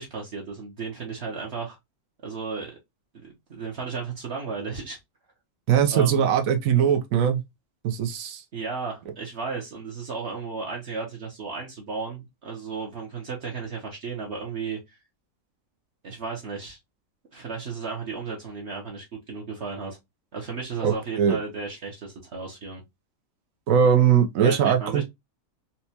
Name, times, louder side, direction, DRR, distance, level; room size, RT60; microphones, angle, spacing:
voice 1, 0.0-1.8 2.2-2.7 3.1-5.0 5.9-6.2 8.5-14.8 16.0-16.8 17.3-20.0 20.3-22.8 24.4-25.0, right 4 dB, 55° right, 1.2 m, -34 dB
voice 2, 5.7-7.4 7.8-8.4 20.8-21.4 23.7-25.0, right 8 dB, 85° right, 1.1 m, -21 dB
4.3 x 2.3 x 2.7 m
omnidirectional pair, 1.4 m